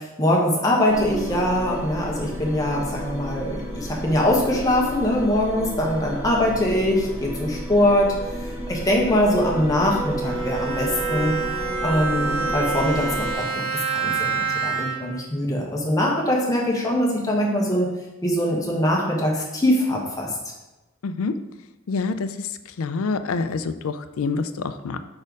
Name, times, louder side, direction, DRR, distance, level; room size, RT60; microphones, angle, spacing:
voice 1, 0.0-8.1 8.7-11.4 11.8-17.9 18.2-20.3, left 1 dB, 15° left, -3 dB, 1.1 m, -22 dB
sound 1, 0.9-13.3, right 1 dB, 10° right, 0.9 m, -32 dB
Bowed string instrument, 10.2-15.3, right 5 dB, 30° right, 1.3 m, -27 dB
voice 2, 21.0-21.3 21.9-22.3 22.8-25.0, left 4 dB, 75° left, 11 dB, 0.4 m, -26 dB
4.8 x 4.3 x 5.2 m, 1.0 s
head